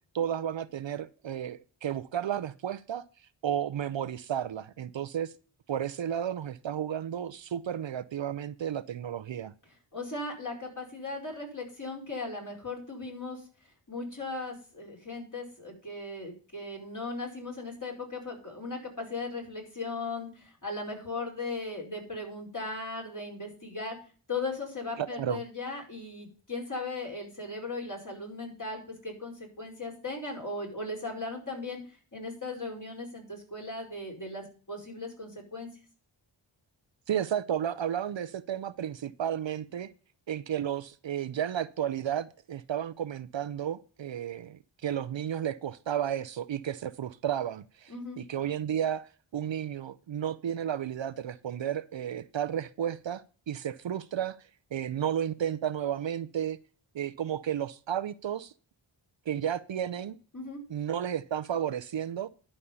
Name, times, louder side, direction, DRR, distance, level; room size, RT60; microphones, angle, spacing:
voice 1, 0.1-3.0 3.4-5.3 5.7-9.5 25.0-25.4 37.1-39.9 40.3-54.4 54.7-56.6 56.9-58.5 59.3-60.2 60.7-62.3, right 9 dB, 65° right, 0.6 m, -32 dB
voice 2, 9.9-24.0 24.3-35.7 47.9-48.2 60.3-60.6, left 3 dB, 40° left, 4.9 m, -38 dB
11.0 x 5.5 x 6.8 m
cardioid pair, 50°, 50 cm